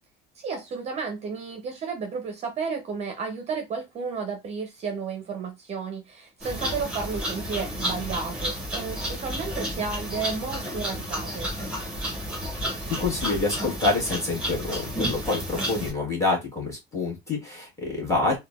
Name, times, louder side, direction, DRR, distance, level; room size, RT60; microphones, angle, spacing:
voice 1, 0.4-11.5, right 5 dB, 35° right, 0.6 m, -32 dB
sound 1, 6.4-15.9, equal, 5° right, 1.1 m, -31 dB
voice 2, 12.9-18.4, left 3 dB, 15° left, 1.5 m, -27 dB
3.7 x 2.2 x 2.3 m
cardioid pair, 155°, 20 cm